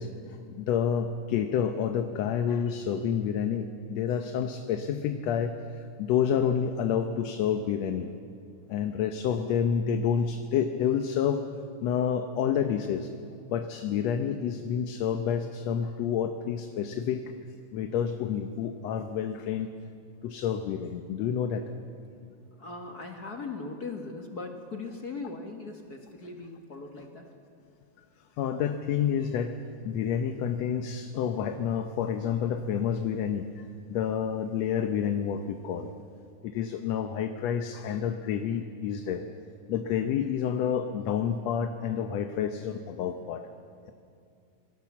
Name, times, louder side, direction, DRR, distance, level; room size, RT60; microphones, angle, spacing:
voice 1, 0.0-8.1 8.7-11.4 11.8-13.1 13.5-17.2 17.7-19.7 20.2-21.6 28.4-29.5 29.8-35.9 36.4-39.3 39.7-43.4, left 8 dB, 70° left, 7 dB, 1.9 m, -29 dB
voice 2, 22.5-27.3, left 3 dB, 40° left, 3 dB, 1.5 m, -39 dB
26.0 x 18.0 x 7.3 m, 2.4 s
omnidirectional pair, 3.5 m